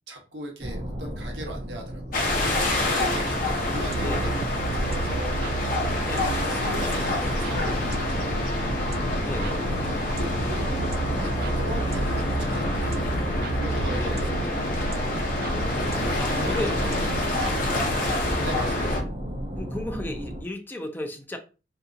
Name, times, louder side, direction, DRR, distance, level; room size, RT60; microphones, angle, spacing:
voice 1, 0.1-5.4 5.7-5.9 6.2-8.5 9.4-10.7 11.1-13.1 13.5-14.6 16.1-17.1 18.4-19.1, equal, 75° right, 0.9 m, -39 dB
sound 1, 0.6-20.4, equal, 35° right, 0.8 m, -35 dB
sound 2, 2.1-19.0, left 1 dB, 50° left, 0.8 m, -27 dB
sound 3, 3.9-18.1, right 5 dB, 60° right, 0.3 m, -35 dB
voice 2, 4.0-4.4 6.0-6.4 9.2-10.7 11.8-11.9 13.9-14.3 15.4-17.1 18.4-18.5 19.0-19.1 19.6-21.4, left 1 dB, 10° left, 0.5 m, -35 dB
2.8 x 2.3 x 3.8 m
head